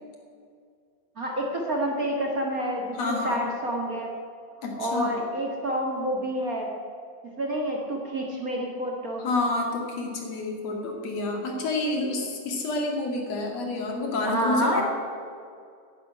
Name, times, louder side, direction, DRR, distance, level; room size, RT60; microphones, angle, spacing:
voice 1, 1.2-4.1 4.8-6.7 7.4-9.3 14.2-14.8, equal, 35° right, -1 dB, 1.5 m, -28 dB
voice 2, 3.0-3.4 4.6-5.2 9.2-14.8, left 2 dB, 50° left, 1 dB, 3.2 m, -29 dB
11.0 x 10.5 x 9.8 m, 2.3 s
omnidirectional pair, 4.0 m